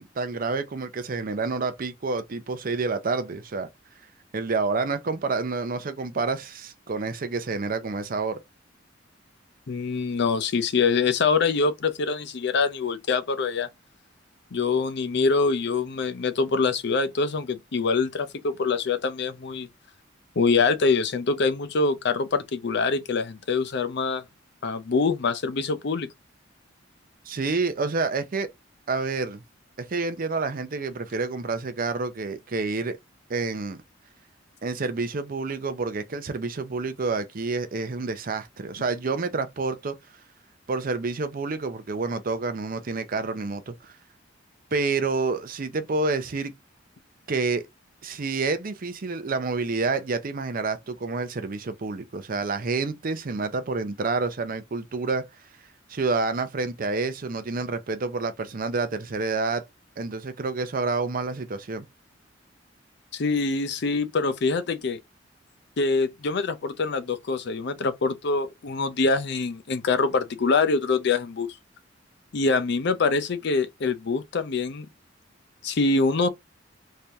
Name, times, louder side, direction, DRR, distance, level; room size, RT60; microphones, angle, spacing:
voice 1, 0.0-3.7 4.3-8.4 27.3-28.5 28.9-29.4 29.8-33.0 33.3-33.8 34.6-39.9 40.7-43.9 44.7-46.5 47.3-47.6 48.0-55.3 55.9-59.6 60.0-61.9, right 3 dB, 50° right, 0.6 m, -28 dB
voice 2, 9.7-13.7 14.5-19.7 20.4-24.2 24.6-26.1 63.1-65.0 65.8-71.5 72.3-74.9 75.6-76.3, left 4 dB, 60° left, 0.5 m, -24 dB
3.3 x 2.8 x 3.4 m
head